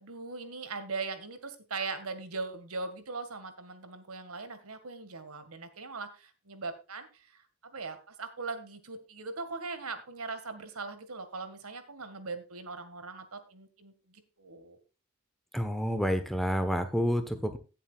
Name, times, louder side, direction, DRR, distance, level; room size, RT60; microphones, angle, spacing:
voice 1, 0.0-14.8, right 4 dB, 85° right, 10 dB, 1.8 m, -40 dB
voice 2, 15.5-17.6, equal, ahead, 8 dB, 1.1 m, -29 dB
17.5 x 7.6 x 2.4 m, 0.32 s
head